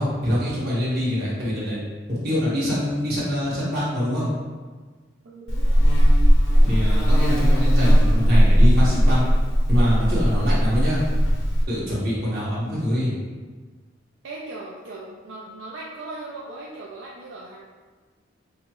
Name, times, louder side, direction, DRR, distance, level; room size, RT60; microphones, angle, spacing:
voice 1, 0.0-1.8 2.1-4.3 6.6-9.2 9.7-11.0 11.7-13.1, equal, 55° right, -8 dB, 1.4 m, -24 dB
voice 2, 5.2-5.9 14.2-17.6, right 2 dB, 80° right, -5 dB, 0.5 m, -38 dB
Buzz, 5.5-11.6, equal, 85° left, 0.7 m, -17 dB
5.4 x 2.0 x 3.0 m, 1.4 s
head